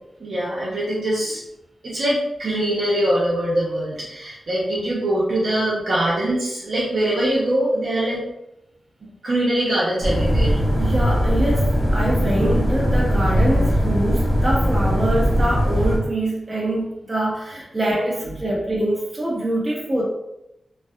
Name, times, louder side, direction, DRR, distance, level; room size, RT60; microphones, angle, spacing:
voice 1, 0.2-1.4 1.8-8.3 9.2-10.6, right 1 dB, 65° right, -7 dB, 0.6 m, -22 dB
sound 1, 10.0-16.0, equal, 20° left, 0.7 m, -20 dB
voice 2, 10.7-20.0, right 1 dB, 25° right, -5 dB, 0.8 m, -24 dB
2.6 x 2.2 x 2.2 m, 0.86 s
wide cardioid pair, 130°, 0 cm